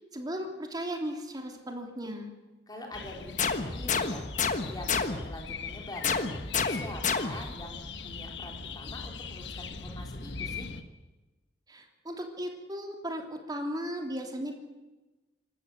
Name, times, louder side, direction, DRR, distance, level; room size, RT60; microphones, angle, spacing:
voice 1, 0.1-2.3 11.7-14.5, equal, 25° right, 3 dB, 3.2 m, -36 dB
voice 2, 2.7-4.3 4.7-6.2 6.7-10.7, left 1 dB, 25° left, 1 dB, 4.0 m, -44 dB
sound 1, 2.9-10.8, left 4 dB, 75° left, 1.4 m, -41 dB
sound 2, 3.4-5.4 6.0-7.6, left 5 dB, 45° left, 1.3 m, -30 dB
26.5 x 13.5 x 8.2 m, 1.1 s
head